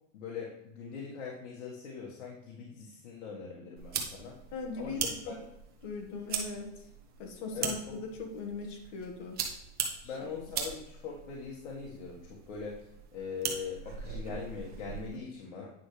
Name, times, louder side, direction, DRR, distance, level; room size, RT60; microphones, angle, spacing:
voice 1, 0.1-4.4 4.8-5.4 7.5-8.0 10.0-15.7, left 5 dB, 75° left, -3 dB, 1.6 m, -42 dB
sound 1, 3.8-15.2, right 7 dB, 25° right, 0.9 m, -40 dB
voice 2, 4.5-5.3 5.8-6.8 7.2-7.8 8.1-9.4 10.0-10.1, left 4 dB, 40° left, 2 dB, 1.5 m, -39 dB
9.3 x 5.8 x 3.2 m, 0.82 s
supercardioid pair, 160°, 38 cm